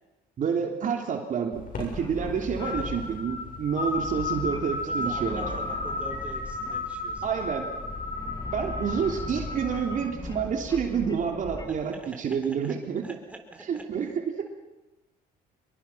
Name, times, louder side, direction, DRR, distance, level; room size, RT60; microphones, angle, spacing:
voice 1, 0.4-5.4 7.2-7.7 8.5-13.0 13.7-14.5, right 7 dB, 50° right, 3 dB, 3.2 m, -29 dB
sound 1, 1.5-10.0, left 3 dB, 55° left, 7.4 m, -34 dB
sound 2, 1.9-12.0, left 3 dB, 25° left, 2.6 m, -40 dB
voice 2, 4.8-7.5 11.7-12.8 13.0-14.1, right 2 dB, 10° right, 3 dB, 4.1 m, -45 dB
25.5 x 22.5 x 5.7 m, 1.0 s
cardioid pair, 110°, 17 cm